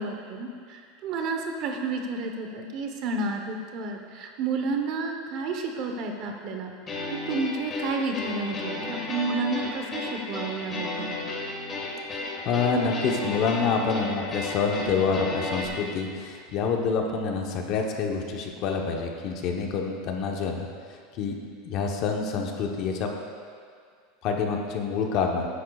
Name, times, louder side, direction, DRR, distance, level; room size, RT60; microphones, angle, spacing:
voice 1, 0.0-6.7 7.1-11.1, right 3 dB, 40° right, 3 dB, 0.9 m, -31 dB
sound 1, 6.9-15.7, left 2 dB, 20° left, 1.6 m, -33 dB
voice 2, 12.4-20.7 21.2-21.4 21.6-23.1 24.2-25.5, left 5 dB, 40° left, 2 dB, 1.0 m, -27 dB
13.0 x 10.0 x 2.4 m, 2.1 s
supercardioid pair, 165°, 0 cm